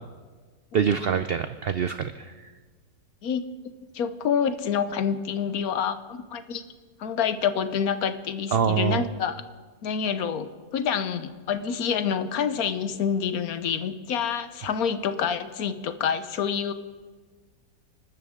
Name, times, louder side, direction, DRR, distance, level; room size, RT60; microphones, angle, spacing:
voice 1, 0.7-2.5 8.5-9.0, right 8 dB, 85° right, 11 dB, 0.5 m, -25 dB
voice 2, 3.2-6.6 7.0-9.4 9.8-16.7, left 7 dB, 70° left, 11 dB, 1.3 m, -27 dB
28.0 x 12.5 x 3.7 m, 1.4 s
omnidirectional pair, 1.7 m